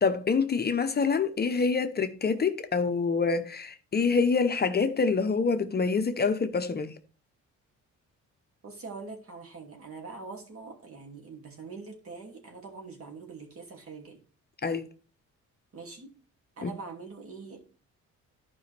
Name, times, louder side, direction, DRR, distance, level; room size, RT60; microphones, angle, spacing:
voice 1, 0.0-6.9 14.6-14.9 16.6-16.7, left 5 dB, 35° left, 0.8 m, -26 dB
voice 2, 8.6-14.2 15.7-16.1 16.6-17.6, right 4 dB, 50° right, 2.6 m, -43 dB
12.0 x 5.1 x 3.4 m
cardioid pair, 90°, 30 cm